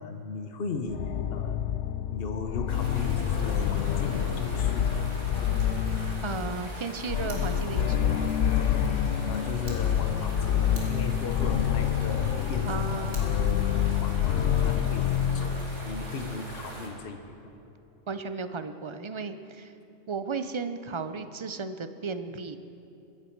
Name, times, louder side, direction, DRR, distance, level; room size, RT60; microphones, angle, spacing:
voice 1, 0.0-1.6 2.1-5.0 9.3-13.4 13.7-17.2, left 4 dB, 60° left, 6 dB, 1.1 m, -37 dB
sound 1, 0.9-16.6, left 9 dB, 90° left, 0.9 m, -27 dB
sound 2, 2.7-16.9, right 1 dB, 90° right, 2.7 m, -43 dB
voice 2, 6.2-8.2 12.6-13.3 18.1-19.7 20.1-22.6, right 4 dB, 35° right, 10 dB, 0.5 m, -35 dB
Fire, 7.3-9.8 10.3-10.4 10.7-13.3, right 1 dB, 70° right, 2.4 m, -50 dB
22.5 x 10.5 x 4.6 m, 2.7 s
omnidirectional pair, 1.2 m